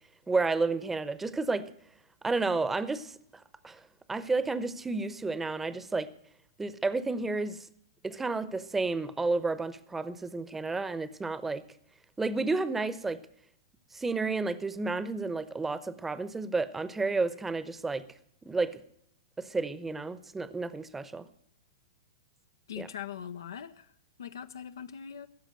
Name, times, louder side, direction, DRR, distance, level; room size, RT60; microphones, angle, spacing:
voice 1, 0.3-1.7 2.2-3.2 3.6-3.8 4.1-6.1 6.6-7.7 8.0-11.6 12.2-13.2 13.9-18.0 18.4-18.8 19.4-21.2 22.8-22.9, right 3 dB, 10° right, 15 dB, 0.9 m, -31 dB
voice 2, 22.7-23.9 24.2-25.3, left 9 dB, 70° left, 10 dB, 0.7 m, -41 dB
16.0 x 7.2 x 8.9 m, 0.70 s
hypercardioid pair, 110°, 2 cm